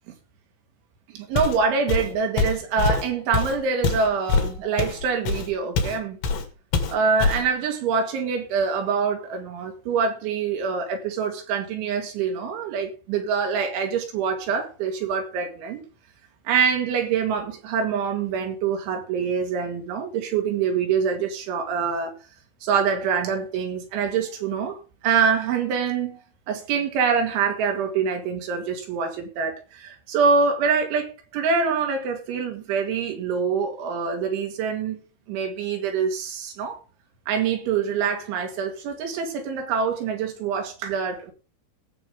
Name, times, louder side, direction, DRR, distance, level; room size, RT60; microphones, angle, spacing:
voice 1, 1.1-6.2 6.9-15.8 16.5-22.1 22.6-24.8 25.0-26.2 26.5-35.0 35.3-36.8 37.3-41.3, right 6 dB, 75° right, 4.4 m, -25 dB
Walk footsteps, 1.4-1.6 1.9-6.0 6.2-6.5 6.7-7.5, left 4 dB, 65° left, 3.9 m, -24 dB
19.0 x 8.0 x 3.6 m
omnidirectional pair, 5.5 m